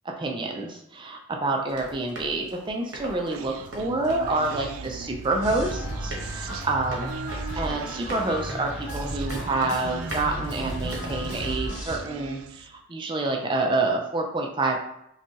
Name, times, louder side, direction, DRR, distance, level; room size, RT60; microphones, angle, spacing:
voice 1, 0.2-7.1 7.6-14.8, right 2 dB, 25° right, 2 dB, 0.4 m, -28 dB
Run, 1.7-11.3, right 1 dB, 60° right, 1.0 m, -41 dB
Human voice, 3.3-12.8, right 6 dB, 90° right, 0.3 m, -39 dB
sound 1, 5.4-12.0, equal, 35° left, 1.0 m, -34 dB
5.5 x 2.3 x 2.8 m, 0.78 s
head